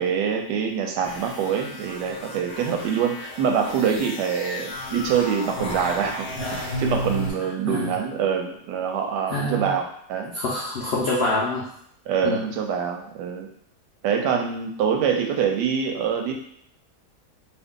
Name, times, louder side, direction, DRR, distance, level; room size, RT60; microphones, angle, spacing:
voice 1, 0.0-10.4 12.1-13.5 14.0-16.3, right 7 dB, 90° right, 3 dB, 1.2 m, -25 dB
sound 1, 1.0-7.3, left 1 dB, 45° left, 1.0 m, -33 dB
voice 2, 9.3-9.7 10.3-11.7 12.2-12.4, left 2 dB, 85° left, -4 dB, 0.5 m, -25 dB
2.7 x 2.5 x 3.6 m, 0.69 s
omnidirectional pair, 1.8 m